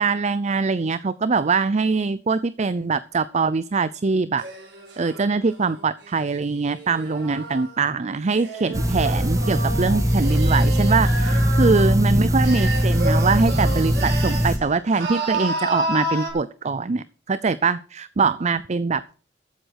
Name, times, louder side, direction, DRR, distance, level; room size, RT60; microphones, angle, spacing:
voice 1, 0.0-4.4 5.0-19.2, right 4 dB, 40° right, 16 dB, 0.5 m, -23 dB
sound 1, 4.4-7.7 8.3-12.0 12.4-14.6 14.9-16.3, right 2 dB, 70° right, 7.2 m, -31 dB
sound 2, 8.7-14.6, equal, 20° right, 1.5 m, -20 dB
14.5 x 7.9 x 6.5 m, 0.40 s
head